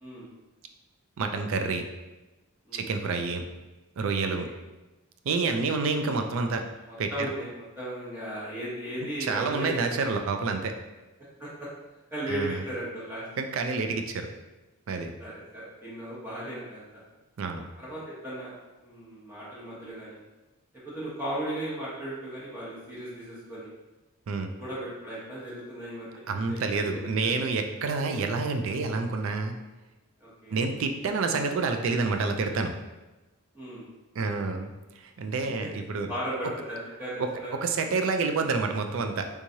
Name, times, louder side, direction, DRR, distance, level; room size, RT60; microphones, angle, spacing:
voice 1, 1.2-1.8 2.7-3.4 4.0-4.5 5.3-6.7 7.0-7.3 9.2-10.8 12.3-12.6 13.4-14.3 14.9-15.1 17.4-17.6 24.3-24.5 26.3-29.6 30.5-32.7 34.2-34.7 35.0-36.1 37.2-37.3 37.6-39.2, right 4 dB, 60° right, 6 dB, 0.3 m, -28 dB
voice 2, 6.9-10.1 11.4-11.7 12.1-13.2 15.2-17.0 17.8-18.5 18.8-20.2 20.8-23.7 24.6-26.2 26.5-27.4 28.0-28.1 30.2-30.6 33.5-33.9 36.1-37.5, right 1 dB, 10° right, -9 dB, 0.9 m, -36 dB
3.5 x 3.0 x 2.7 m, 1.1 s
head